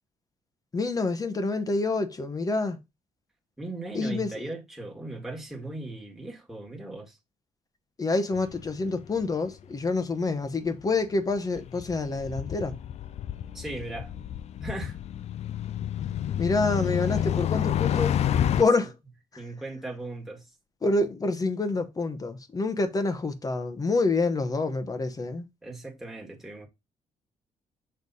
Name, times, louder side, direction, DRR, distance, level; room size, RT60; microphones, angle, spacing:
voice 1, 0.7-2.8 3.9-4.3 8.0-12.7 16.4-18.2 18.6-18.9 19.3-19.4 20.8-25.4, left 3 dB, 25° left, 1.1 m, -27 dB
voice 2, 3.6-7.2 13.5-14.1 14.6-15.0 19.4-20.5 25.6-26.7, right 2 dB, 5° right, 1.8 m, -38 dB
sound 1, 8.3-8.9 9.2-9.3 11.4-18.6, left 10 dB, 55° left, 0.4 m, -29 dB
6.6 x 3.5 x 4.1 m
cardioid pair, 105°, 13 cm